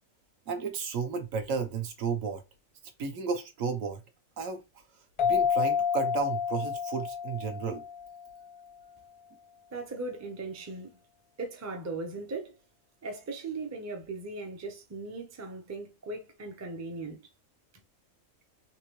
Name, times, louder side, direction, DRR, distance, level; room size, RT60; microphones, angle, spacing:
voice 1, 0.5-2.4 3.0-4.0 4.4-4.6 5.2-7.8, right 5 dB, 75° right, 1.2 m, -33 dB
sound 1, 5.2-8.5, left 7 dB, 45° left, 0.4 m, -29 dB
voice 2, 9.7-11.0 11.4-12.6 13.0-17.3, right 3 dB, 25° right, 0.3 m, -38 dB
3.7 x 2.8 x 3.0 m
omnidirectional pair, 1.4 m